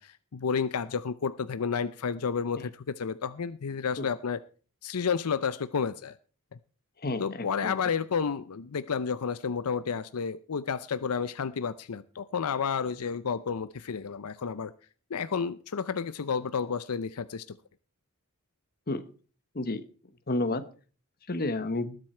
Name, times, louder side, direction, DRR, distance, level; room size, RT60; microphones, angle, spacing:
voice 1, 0.0-4.4 4.8-6.2 7.2-14.7 15.1-17.6, left 6 dB, 80° left, 14 dB, 0.6 m, -31 dB
voice 2, 7.0-7.7 18.9-19.0 19.5-19.8 20.3-20.6 21.3-22.0, left 2 dB, 45° left, 11 dB, 1.1 m, -30 dB
19.5 x 7.8 x 4.4 m, 0.39 s
head